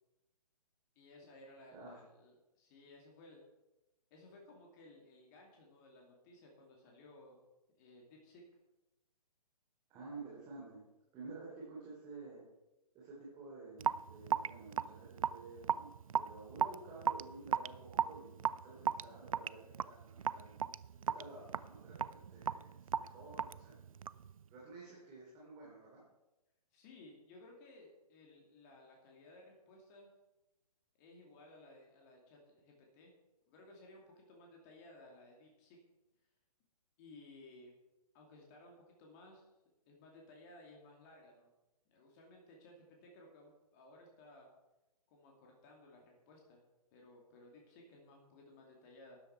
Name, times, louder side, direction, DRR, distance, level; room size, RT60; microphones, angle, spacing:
voice 1, 1.0-3.4 4.1-7.4 7.7-8.4 26.7-30.1 31.0-33.1 33.5-35.8 37.0-37.7 38.1-39.5 39.9-41.5 41.9-44.5 45.1-46.6 46.9-49.2, left 2 dB, 30° left, 0 dB, 2.5 m, -58 dB
voice 2, 9.9-10.8 11.1-12.4 12.9-20.6 21.0-23.8 24.5-26.0, right 3 dB, 20° right, -5 dB, 3.5 m, -52 dB
Raindrop / Drip, 13.8-24.3, right 8 dB, 60° right, 0.4 m, -37 dB
13.0 x 10.5 x 4.5 m, 0.99 s
figure-of-eight pair, 130°, 21 cm